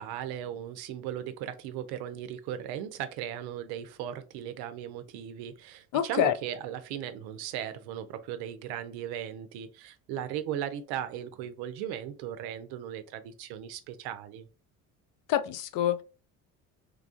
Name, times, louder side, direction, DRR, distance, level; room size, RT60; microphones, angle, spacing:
voice 1, 0.0-14.5, right 10 dB, 65° right, 0.6 m, -37 dB
voice 2, 5.9-6.3 15.3-16.0, left 11 dB, 50° left, 0.5 m, -26 dB
3.2 x 2.3 x 2.4 m
hypercardioid pair, 60°, 41 cm